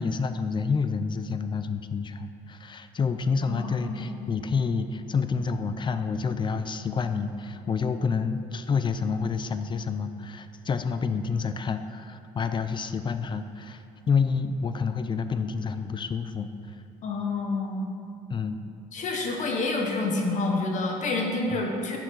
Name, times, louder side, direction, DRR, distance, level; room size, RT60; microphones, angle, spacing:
voice 1, 0.0-16.5 18.3-18.6 21.5-21.7, left 5 dB, 30° left, 10 dB, 0.5 m, -28 dB
voice 2, 3.5-4.0 17.0-17.9 18.9-22.0, left 3 dB, 55° left, 1 dB, 1.3 m, -28 dB
7.4 x 5.9 x 6.5 m, 2.6 s
supercardioid pair, 90°, 15 cm